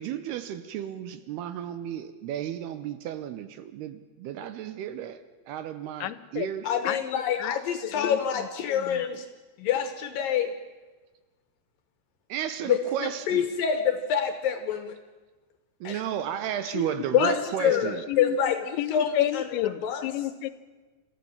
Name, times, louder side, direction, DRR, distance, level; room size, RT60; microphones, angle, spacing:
voice 1, 0.0-5.2 5.5-6.7 12.3-13.5 15.8-18.0, right 10 dB, 75° right, 11 dB, 2.7 m, -33 dB
voice 2, 6.0-6.5 6.8-7.0 7.4-9.1 16.7-16.9 17.2-17.8 18.1-20.5, left 14 dB, 90° left, 15 dB, 3.1 m, -32 dB
voice 3, 6.6-9.3 9.6-10.5 12.7-15.0 15.8-16.0 17.1-19.5 19.8-20.0, left 8 dB, 70° left, 8 dB, 2.2 m, -26 dB
27.5 x 14.5 x 7.2 m, 1.3 s
omnidirectional pair, 5.1 m